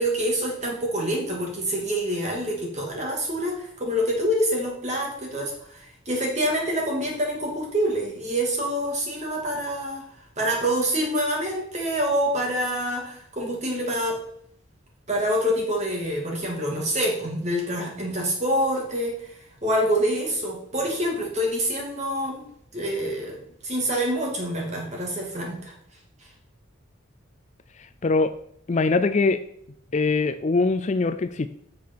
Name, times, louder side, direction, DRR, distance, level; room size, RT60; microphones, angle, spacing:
voice 1, 0.0-10.0 10.4-14.2 15.1-22.4 22.7-25.7, equal, 30° right, -1 dB, 2.6 m, -26 dB
voice 2, 28.0-28.3 28.7-29.4 29.9-31.5, left 3 dB, 35° left, 11 dB, 0.4 m, -22 dB
8.4 x 6.8 x 6.0 m, 0.69 s
head